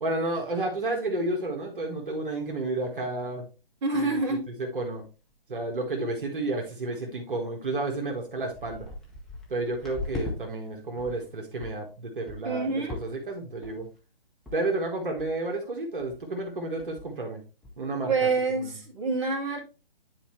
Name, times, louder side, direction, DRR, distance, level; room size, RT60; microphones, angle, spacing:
voice 1, 0.0-3.4 3.9-4.2 4.6-5.0 5.5-8.9 9.5-13.9 14.5-17.4 17.8-18.3 18.6-18.8, right 2 dB, 60° right, 1 dB, 1.7 m, -31 dB
voice 2, 3.8-4.5 12.4-13.0 18.1-19.6, right 3 dB, 30° right, -1 dB, 2.3 m, -27 dB
sound 1, 5.3-5.7 6.0-6.3 6.9-7.0 7.7-7.8 8.0-10.4 10.7-11.2 11.6-11.8 12.3-12.6 12.9-13.3 13.6-14.0 14.5-14.6 14.8-14.9 15.2-15.6 16.0-16.2 16.5-16.6 16.8-17.2 17.6-17.7, left 2 dB, ahead, 0.6 m, -39 dB
9.9 x 4.3 x 3.1 m, 0.32 s
figure-of-eight pair, 140°, 29 cm